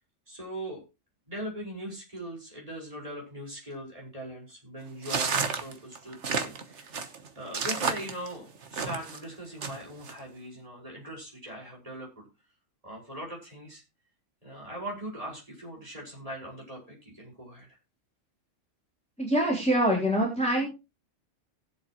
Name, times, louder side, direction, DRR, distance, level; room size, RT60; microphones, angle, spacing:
voice 1, 0.3-0.8 1.3-6.9 7.4-12.3 12.8-13.8 14.4-17.7, right 1 dB, 25° right, -3 dB, 5.4 m, -40 dB
sound 1, 5.0-9.2 9.6-10.1, right 5 dB, 65° right, 1.5 m, -31 dB
voice 2, 19.2-20.7, equal, 5° left, -3 dB, 3.4 m, -25 dB
18.5 x 7.9 x 3.0 m, 0.27 s
omnidirectional pair, 1.3 m